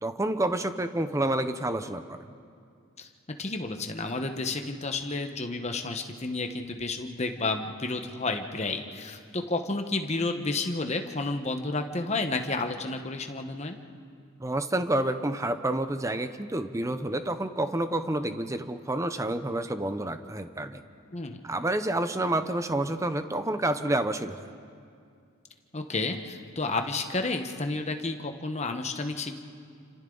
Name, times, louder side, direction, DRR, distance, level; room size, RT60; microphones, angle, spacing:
voice 1, 0.0-2.2 14.4-20.8 21.4-24.5, right 1 dB, 15° right, 9 dB, 0.7 m, -29 dB
voice 2, 3.4-13.8 21.1-21.4 25.7-29.3, left 3 dB, 30° left, 5 dB, 1.2 m, -31 dB
30.0 x 26.0 x 4.0 m, 2.3 s
head